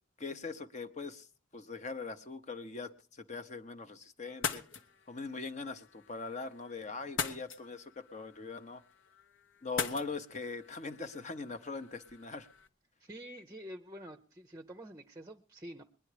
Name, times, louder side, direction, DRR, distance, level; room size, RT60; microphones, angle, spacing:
voice 1, 0.2-1.3 1.5-4.6 5.1-8.8 9.6-12.5, left 4 dB, 35° left, 9 dB, 0.8 m, -41 dB
sound 1, 4.3-12.7, left 6 dB, 80° left, 1.1 m, -43 dB
voice 2, 13.0-15.8, equal, 20° right, 8 dB, 0.6 m, -47 dB
20.5 x 10.5 x 4.9 m, 0.38 s
head